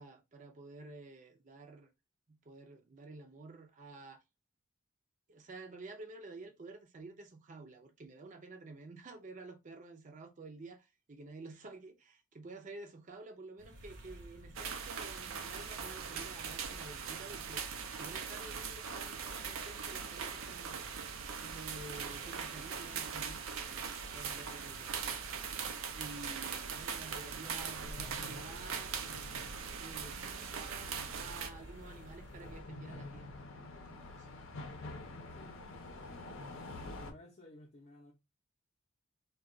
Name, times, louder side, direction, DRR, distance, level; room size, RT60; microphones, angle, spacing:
voice 1, 0.0-1.9 2.3-4.2 5.3-20.8 21.4-25.0 25.9-29.0 29.8-34.7 35.4-35.6, right 3 dB, 40° right, 0.5 m, -51 dB
sound 1, 13.6-32.6, right 1 dB, 60° right, 0.8 m, -52 dB
sound 2, 14.5-31.5, right 7 dB, 90° right, 0.5 m, -41 dB
sound 3, 27.3-37.1, left 2 dB, 80° left, 0.6 m, -48 dB
voice 2, 35.3-38.1, left 2 dB, 40° left, 0.6 m, -57 dB
2.3 x 2.3 x 3.6 m
head